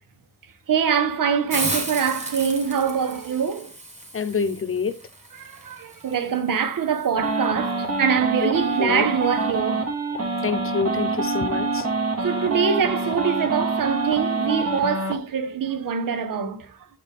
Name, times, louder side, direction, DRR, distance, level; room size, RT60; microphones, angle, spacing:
voice 1, 0.7-3.7 5.3-9.9 12.2-16.9, right 7 dB, 90° right, 0.8 m, -24 dB
Hiss, 1.5-7.1, right 2 dB, 20° right, 1.5 m, -34 dB
voice 2, 4.1-5.0 8.4-8.5 8.8-9.1 10.4-11.9, left 5 dB, 40° left, 0.7 m, -26 dB
sound 1, 7.2-15.1, right 3 dB, 50° right, 1.2 m, -25 dB
6.7 x 4.3 x 3.5 m
wide cardioid pair, 105°, 32 cm